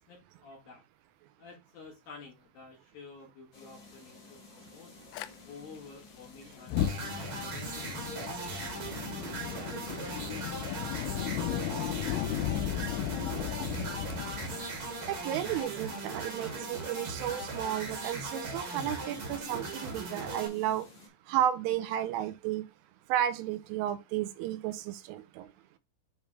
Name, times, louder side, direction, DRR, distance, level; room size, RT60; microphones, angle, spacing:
voice 1, 0.1-0.8 1.4-5.0 5.4-7.9, left 4 dB, 60° left, 2.9 m, -51 dB
sound 1, 3.5-21.1, left 3 dB, 40° left, 1.7 m, -54 dB
Fire, 5.1-5.3 6.6-15.6, left 12 dB, 90° left, 3.1 m, -35 dB
sound 2, 6.8-20.5, right 3 dB, 45° right, 1.8 m, -38 dB
voice 2, 15.1-20.9 21.3-22.6 23.1-25.5, right 11 dB, 85° right, 3.2 m, -33 dB
10.0 x 3.4 x 3.3 m
omnidirectional pair, 5.7 m